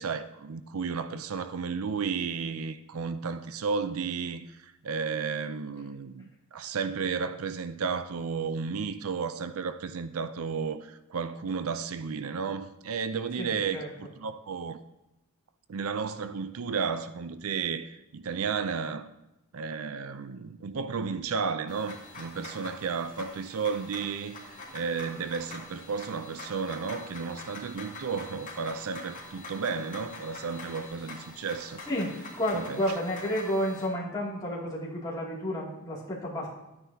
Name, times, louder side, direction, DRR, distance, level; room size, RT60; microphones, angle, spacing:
voice 1, 0.0-14.8 15.7-19.1 19.5-31.8 32.5-32.8, right 5 dB, 75° right, 0.5 m, -33 dB
voice 2, 13.4-13.9 31.9-36.5, equal, 20° left, 2.5 m, -31 dB
sound 1, 21.7-33.9, left 2 dB, 35° left, 2.2 m, -45 dB
12.0 x 9.5 x 2.8 m
head